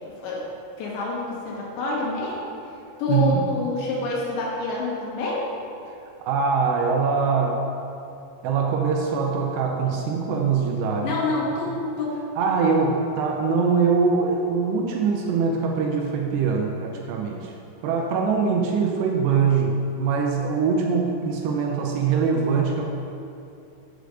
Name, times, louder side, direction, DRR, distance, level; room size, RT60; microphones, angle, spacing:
voice 1, 0.0-0.5 0.8-2.4 3.0-5.5 11.0-12.2, left 3 dB, 85° left, -4 dB, 3.7 m, -27 dB
voice 2, 3.1-3.4 6.2-7.6 8.4-11.4 12.4-17.6 17.8-22.8, right 5 dB, 85° right, 1 dB, 2.7 m, -23 dB
7.7 x 5.0 x 6.5 m, 2.7 s
omnidirectional pair, 5.1 m